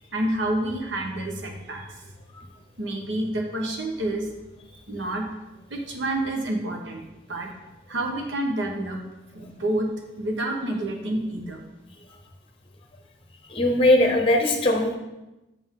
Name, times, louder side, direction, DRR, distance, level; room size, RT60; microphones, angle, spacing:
voice 1, 0.1-1.9 2.8-4.3 4.9-5.3 5.7-7.5 7.9-9.0 9.3-9.9 10.2-11.6, right 1 dB, 75° right, 1 dB, 1.0 m, -28 dB
voice 2, 13.5-14.9, left 1 dB, 30° left, 3 dB, 0.9 m, -20 dB
6.8 x 5.6 x 3.7 m, 0.98 s
head